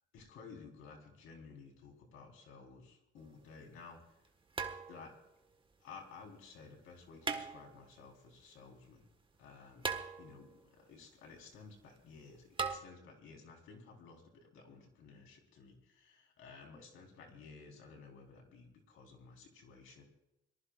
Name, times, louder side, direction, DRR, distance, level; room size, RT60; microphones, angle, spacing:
voice 1, 0.1-4.3 4.9-5.1 5.8-9.0 9.4-9.9 10.2-20.0, left 4 dB, 85° left, 2 dB, 3.9 m, -55 dB
sound 1, 3.2-3.3 4.5-5.3 7.2-8.0 9.8-10.6 12.6-12.8, right 5 dB, 25° right, 1.4 m, -39 dB
26.0 x 19.5 x 2.4 m, 0.85 s
cardioid pair, 90°, 20 cm